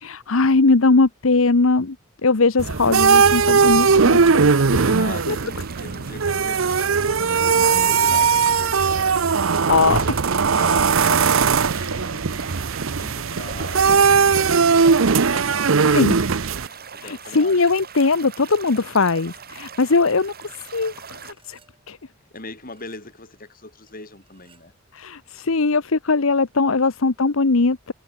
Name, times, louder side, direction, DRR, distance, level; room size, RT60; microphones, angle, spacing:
voice 1, 0.0-2.0 2.2-4.4 4.8-5.0 5.3-5.4 9.7-10.0 15.9-16.1 17.0-20.3 20.7-21.6 21.9-22.0 24.9-27.9, left 3 dB, 80° left, 1.0 m, -20 dB
sound 1, 2.6-16.7, right 5 dB, 70° right, 0.8 m, -18 dB
sound 2, 3.0-21.3, right 7 dB, 45° right, 2.7 m, -41 dB
voice 2, 4.9-10.2 10.5-12.6 13.0-14.2 15.0-16.4 16.7-17.6 22.3-24.7, left 3 dB, 45° left, 7.7 m, -40 dB
sound 3, 21.2-22.0 22.4-23.1 23.9-24.8, right 2 dB, 25° right, 6.4 m, -50 dB
head